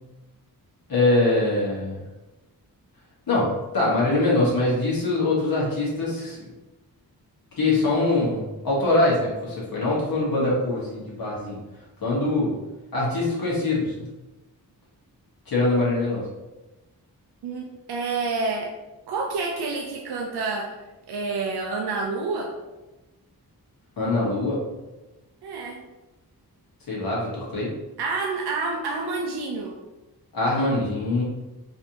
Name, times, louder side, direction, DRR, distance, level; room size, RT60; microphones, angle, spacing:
voice 1, 0.9-2.0 3.3-6.4 7.6-11.6 12.0-12.5 12.9-13.9 15.5-16.2 24.0-24.6 26.9-27.7 30.3-31.2, left 2 dB, 65° left, -6 dB, 1.3 m, -23 dB
voice 2, 17.4-18.7 19.1-20.7 21.1-22.5 25.4-25.8 28.0-29.7, right 3 dB, 90° right, 0 dB, 0.5 m, -28 dB
4.0 x 2.7 x 2.8 m, 1.1 s
wide cardioid pair, 150°, 38 cm